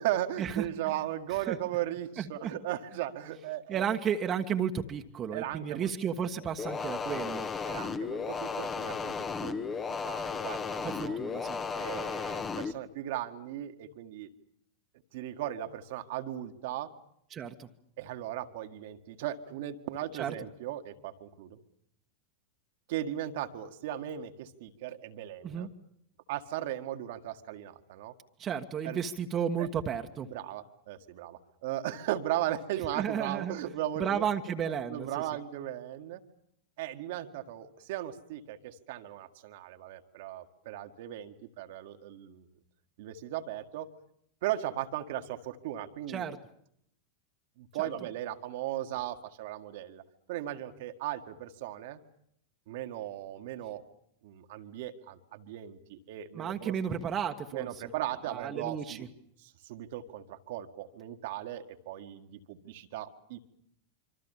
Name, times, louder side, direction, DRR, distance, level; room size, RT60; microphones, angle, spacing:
voice 1, 0.0-3.9 5.3-5.9 7.6-9.1 9.4-11.2 11.7-14.3 15.1-16.9 18.0-21.6 22.9-25.7 26.3-28.1 28.8-29.0 29.6-29.7 30.3-34.2 34.7-36.2 36.8-42.5 43.0-43.9 44.4-46.3 47.6-50.0 50.3-52.0 52.7-53.8 54.2-56.7 57.5-59.1 59.4-63.4, right 12 dB, 50° right, 6 dB, 1.8 m, -37 dB
voice 2, 2.2-2.5 3.7-7.5 10.8-11.6 17.3-17.7 20.2-20.3 25.4-25.7 28.4-30.3 32.9-33.5 34.0-35.2 46.1-46.4 47.8-47.9 56.3-57.7 58.3-59.0, right 8 dB, 25° right, 4 dB, 1.5 m, -33 dB
sound 1, 6.6-12.7, left 5 dB, 20° left, 1.5 m, -34 dB
26.0 x 25.5 x 7.2 m, 0.72 s
figure-of-eight pair, 90°, 0 cm